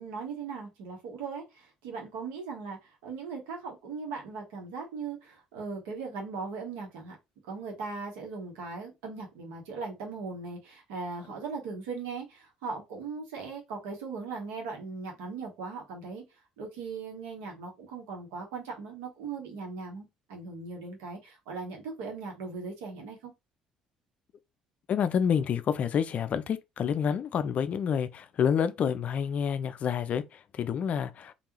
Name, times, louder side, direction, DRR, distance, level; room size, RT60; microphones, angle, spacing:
voice 1, 0.0-7.2 7.5-16.2 16.6-23.3, right 4 dB, 65° right, 1.1 m, -39 dB
voice 2, 24.9-31.3, left 7 dB, 45° left, 0.4 m, -28 dB
3.5 x 2.4 x 2.8 m
figure-of-eight pair, 50°, 3 cm